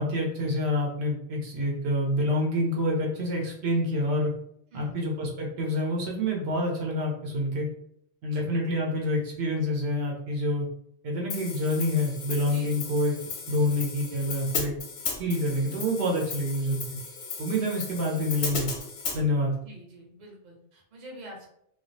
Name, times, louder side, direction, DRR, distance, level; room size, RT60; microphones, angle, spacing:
voice 1, 0.0-4.3 4.7-7.7 8.2-10.7 11.0-13.2 13.5-14.7 15.2-16.8 17.4-18.7 19.1-19.6, left 1 dB, 80° right, -2 dB, 0.9 m, -27 dB
voice 2, 4.7-5.0 8.3-8.5 12.5-12.9 19.6-21.5, right 1 dB, 45° right, -2 dB, 0.8 m, -47 dB
Hi-hat, 11.3-19.2, left 4 dB, 85° left, 0.9 m, -36 dB
2.3 x 2.1 x 2.6 m, 0.70 s
omnidirectional pair, 1.1 m